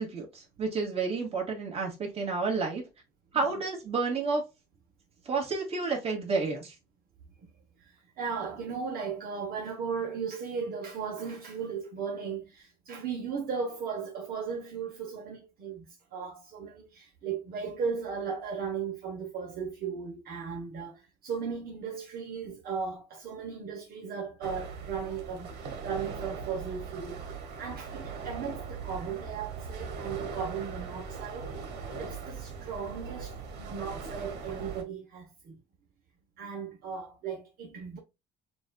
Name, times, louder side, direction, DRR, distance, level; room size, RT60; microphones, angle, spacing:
voice 1, 0.0-2.8 3.3-4.4 5.3-6.7, right 4 dB, 35° right, 2.2 m, -30 dB
voice 2, 7.8-31.5 32.0-35.6 36.4-38.0, right 6 dB, 60° right, 1.1 m, -36 dB
sound 1, 24.4-34.8, right 5 dB, 85° right, 1.4 m, -40 dB
6.1 x 2.6 x 2.3 m
cardioid pair, 110°, 17 cm